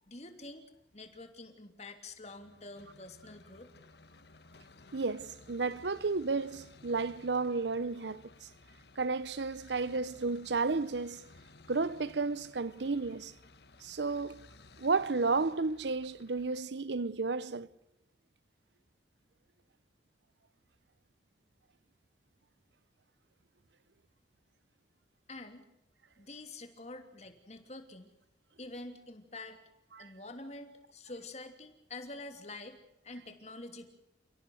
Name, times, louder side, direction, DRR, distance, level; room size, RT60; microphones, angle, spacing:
voice 1, 0.0-0.7 0.9-3.7 25.3-25.7 26.2-28.1 28.6-29.6 30.0-32.8 33.0-33.9, left 2 dB, 40° left, 3.0 m, -47 dB
sound 1, 2.3-16.6, left 3 dB, 65° left, 1.5 m, -57 dB
voice 2, 4.9-8.2 9.0-11.2 11.7-13.3 13.8-14.5 14.8-17.7 29.9-30.1, right 4 dB, 75° right, 0.8 m, -32 dB
30.0 x 17.5 x 6.5 m
head